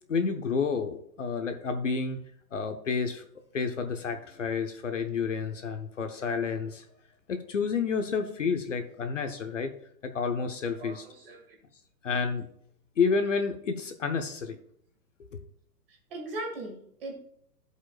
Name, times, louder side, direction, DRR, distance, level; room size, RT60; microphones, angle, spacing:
voice 1, 0.1-2.2 2.5-3.2 3.5-6.8 7.3-9.7 10.0-11.0 12.0-12.5 13.0-14.6 15.3-15.4, left 5 dB, 50° left, 7 dB, 0.8 m, -30 dB
voice 2, 10.8-11.6 16.1-17.1, right 2 dB, 35° right, 0 dB, 2.1 m, -39 dB
15.5 x 5.3 x 2.4 m, 0.68 s
hypercardioid pair, 180°, 49 cm